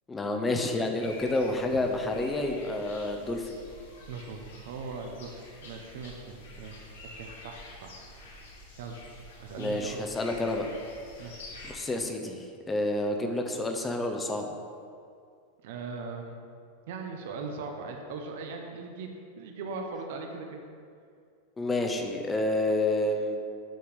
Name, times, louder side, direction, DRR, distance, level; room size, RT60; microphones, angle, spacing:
voice 1, 0.1-3.5 9.6-10.7 11.6-14.5 21.6-23.4, left 2 dB, 10° left, 4 dB, 0.7 m, -29 dB
sound 1, 1.0-11.7, left 2 dB, 90° left, 2.0 m, -48 dB
voice 2, 4.1-4.4 4.6-6.8 7.1-7.9 8.8-9.0 9.4-10.0 11.2-11.5 15.6-16.4 16.9-19.1 19.4-20.6, right 4 dB, 65° right, 2 dB, 0.9 m, -39 dB
7.8 x 5.0 x 5.2 m, 2.3 s
supercardioid pair, 155°, 0 cm